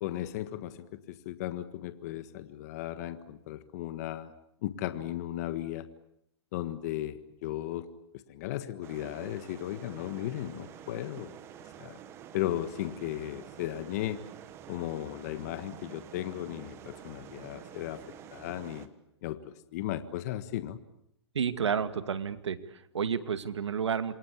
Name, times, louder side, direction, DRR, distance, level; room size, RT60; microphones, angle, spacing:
voice 1, 0.0-4.3 4.6-5.9 6.5-7.9 8.3-11.3 11.8-12.0 12.3-14.2 14.7-18.0 18.3-18.9 19.2-20.8, left 13 dB, 35° left, 11 dB, 1.6 m, -36 dB
sound 1, 8.8-18.9, right 9 dB, 20° right, 1.4 m, -48 dB
voice 2, 21.3-24.1, right 7 dB, 90° right, 11 dB, 2.3 m, -31 dB
28.0 x 23.0 x 8.5 m, 0.76 s
hypercardioid pair, 160°, 14 cm